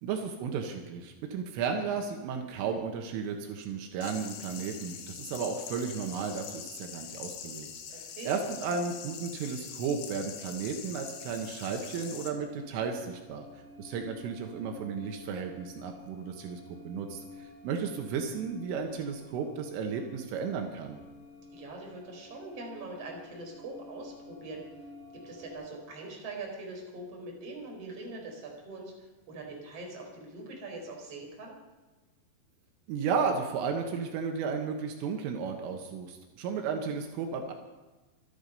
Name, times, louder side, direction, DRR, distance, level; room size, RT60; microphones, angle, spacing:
voice 1, 0.0-21.0 32.9-37.5, right 6 dB, 80° right, 4 dB, 3.9 m, -34 dB
sound 1, 4.0-12.3, left 8 dB, 75° left, 4.0 m, -44 dB
voice 2, 7.9-8.3 21.5-24.6 25.1-31.5, right 2 dB, 30° right, 0 dB, 4.5 m, -43 dB
sound 2, 11.3-25.5, left 2 dB, 15° right, 4.8 m, -51 dB
25.5 x 10.5 x 5.4 m, 1.2 s
omnidirectional pair, 5.7 m